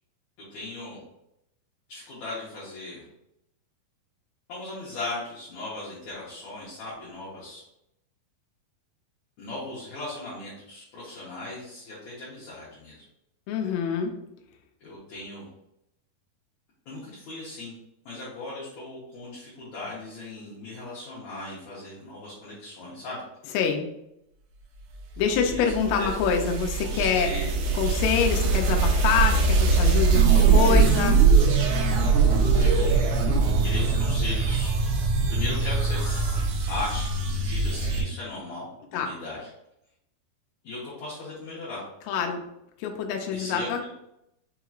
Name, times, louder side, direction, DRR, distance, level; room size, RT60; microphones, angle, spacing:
voice 1, 0.5-1.0 1.9-3.1 4.5-7.6 9.4-13.0 14.8-15.5 16.9-17.7 18.1-23.2 25.2-25.6 26.0-26.1 26.9-28.0 32.5-33.1 33.6-34.8 35.3-36.4 36.7-39.5 40.6-41.8 43.3-43.7, left 2 dB, 65° left, -8 dB, 1.9 m, -37 dB
voice 2, 13.5-14.2 23.5-23.9 25.2-27.3 27.7-31.2 38.9-39.1 42.1-42.4 42.8-43.8, left 7 dB, 90° left, 2 dB, 2.5 m, -26 dB
sound 1, 25.2-38.0, right 4 dB, 80° right, 1.8 m, -22 dB
5.8 x 2.9 x 2.4 m, 0.83 s
omnidirectional pair, 4.3 m